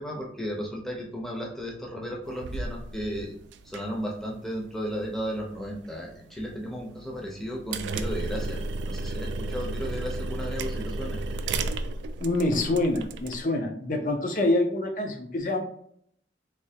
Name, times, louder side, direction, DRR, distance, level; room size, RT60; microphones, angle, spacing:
voice 1, 0.0-3.3 3.6-8.6 8.9-11.2, equal, ahead, -3 dB, 0.6 m, -34 dB
sound 1, 2.2-13.4, right 2 dB, 90° right, 0.3 m, -34 dB
voice 2, 12.2-15.6, left 2 dB, 45° left, 5 dB, 0.5 m, -26 dB
3.3 x 2.7 x 2.8 m, 0.68 s
head